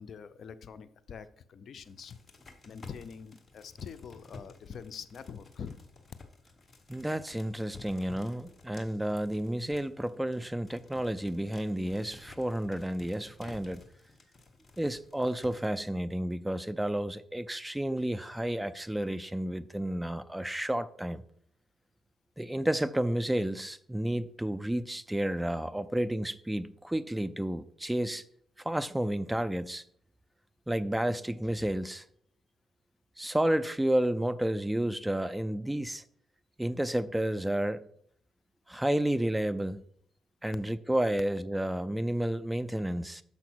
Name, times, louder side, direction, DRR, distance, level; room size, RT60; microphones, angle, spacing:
voice 1, 0.0-2.2 2.7-5.8, left 6 dB, 55° left, 0.6 m, -44 dB
sound 1, 1.8-15.9, left 3 dB, 25° left, 1.3 m, -53 dB
voice 2, 6.9-13.8 14.8-21.2 22.4-28.2 28.6-29.8 30.7-32.0 33.2-36.0 36.6-37.9 38.7-39.8 40.4-43.2, right 1 dB, 5° right, 0.4 m, -31 dB
7.0 x 5.6 x 6.1 m
cardioid pair, 90°, 0 cm